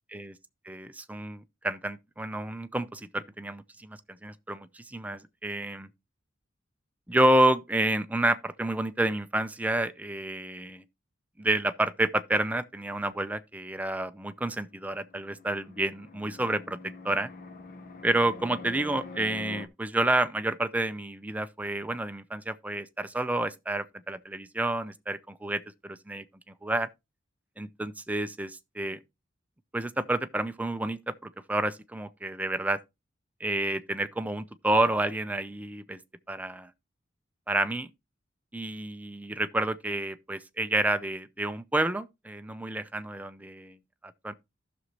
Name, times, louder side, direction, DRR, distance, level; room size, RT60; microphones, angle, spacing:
voice 1, 0.7-5.9 7.1-10.8 11.4-17.3 18.0-26.2 26.6-26.9 27.6-29.0 29.7-32.8 33.4-36.0 36.3-36.7 37.5-37.9 38.5-43.8 44.2-44.3, right 1 dB, 10° right, 0.5 m, -29 dB
Fixed-wing aircraft airplane, 14.8-19.7, left 3 dB, 45° left, 0.8 m, -45 dB
14.5 x 6.2 x 2.9 m
head